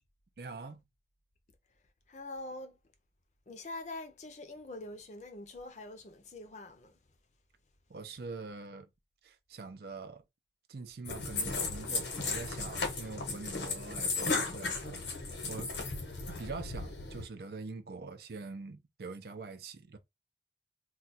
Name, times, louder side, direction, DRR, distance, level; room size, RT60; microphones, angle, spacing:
voice 1, 0.4-0.8 7.9-8.9 9.2-10.2 10.7-15.0 15.5-15.7 16.3-20.0, right 4 dB, 60° right, 0.5 m, -44 dB
voice 2, 2.1-2.8 3.5-7.0, left 2 dB, 40° left, 0.5 m, -44 dB
sound 1, 11.0-17.2, left 3 dB, 75° left, 1.0 m, -35 dB
2.4 x 2.3 x 4.0 m
head